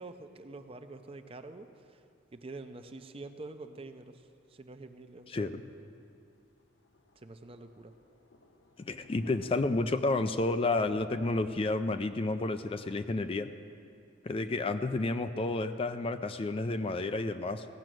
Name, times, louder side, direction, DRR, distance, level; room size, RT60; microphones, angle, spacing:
voice 1, 0.0-2.0 2.3-5.5 7.2-7.9, right 2 dB, 30° right, 8 dB, 0.6 m, -46 dB
Thunder, 4.5-4.7 5.1-5.2 5.5-5.6 5.9-6.0 6.2-11.5, left 2 dB, 75° left, 0.8 m, -57 dB
voice 2, 8.8-13.5 14.2-17.7, left 2 dB, 30° left, 10 dB, 0.4 m, -31 dB
16.5 x 6.2 x 7.7 m, 2.5 s
head